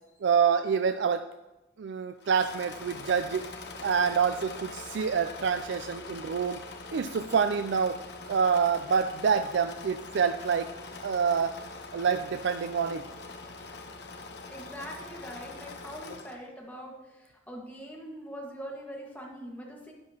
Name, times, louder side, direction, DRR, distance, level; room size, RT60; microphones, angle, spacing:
voice 1, 0.2-1.2 1.8-3.5 3.8-6.6 6.9-8.0 8.3-10.7 11.0-11.6 11.9-13.1, right 6 dB, 75° right, 8 dB, 0.4 m, -27 dB
Engine / Mechanisms, 2.2-16.5, left 3 dB, 60° left, 0.9 m, -43 dB
voice 2, 14.5-19.9, equal, 10° left, -2 dB, 1.6 m, -43 dB
12.0 x 9.3 x 2.9 m, 1.0 s
head